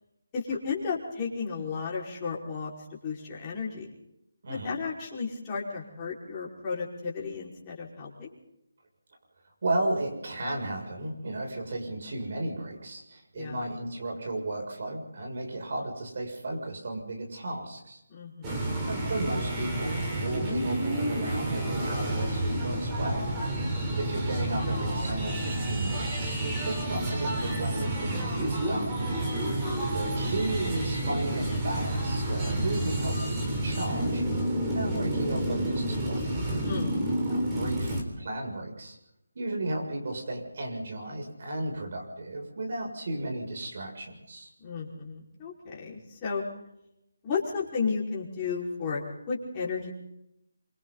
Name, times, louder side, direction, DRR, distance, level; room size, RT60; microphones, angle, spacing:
voice 1, 0.3-3.9 4.5-8.3 13.3-13.6 18.1-18.8 29.3-29.7 36.6-37.3 44.6-46.4 47.2-49.0 49.3-49.9, left 5 dB, 20° left, -4 dB, 5.2 m, -34 dB
voice 2, 9.6-18.0 18.8-23.2 23.9-28.9 29.9-34.2 34.7-36.3 37.3-39.0 39.4-44.5, right 2 dB, 50° right, 2 dB, 7.2 m, -34 dB
sound 1, 18.4-38.0, right 1 dB, 15° right, 4.0 m, -30 dB
26.5 x 25.0 x 4.1 m, 0.84 s
figure-of-eight pair, 165°, 0 cm